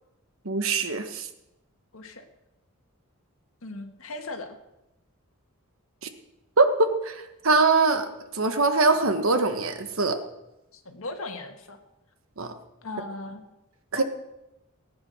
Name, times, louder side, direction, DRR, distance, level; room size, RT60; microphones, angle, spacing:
voice 1, 0.4-1.3 6.6-10.2 12.4-12.5 13.9-14.0, right 3 dB, 65° right, 8 dB, 1.4 m, -23 dB
voice 2, 1.9-2.2 3.6-4.6 10.7-11.8 12.8-13.4 14.0-14.1, left 2 dB, 65° left, 5 dB, 1.8 m, -37 dB
18.5 x 8.7 x 6.3 m, 0.93 s
head